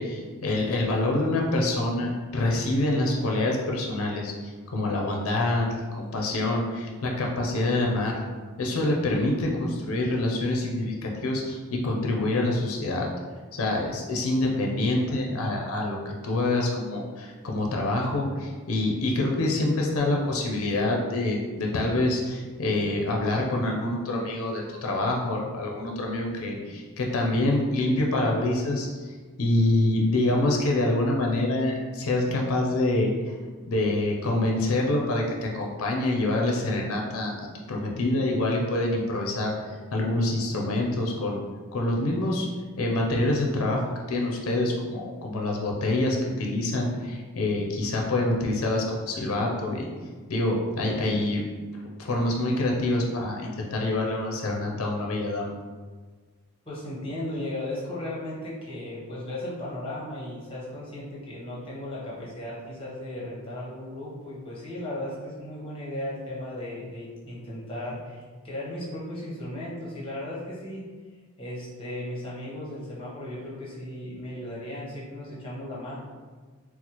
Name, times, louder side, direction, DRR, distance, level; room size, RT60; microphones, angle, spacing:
voice 1, 0.0-8.2 8.6-13.1 13.6-33.3 33.7-41.4 41.7-42.5 42.8-49.9 50.3-51.4 52.0-55.5, left 2 dB, 70° left, 0 dB, 0.5 m, -26 dB
voice 2, 56.6-70.8 71.4-76.0, left 1 dB, 25° left, -7 dB, 0.9 m, -36 dB
4.2 x 2.0 x 2.9 m, 1.4 s
head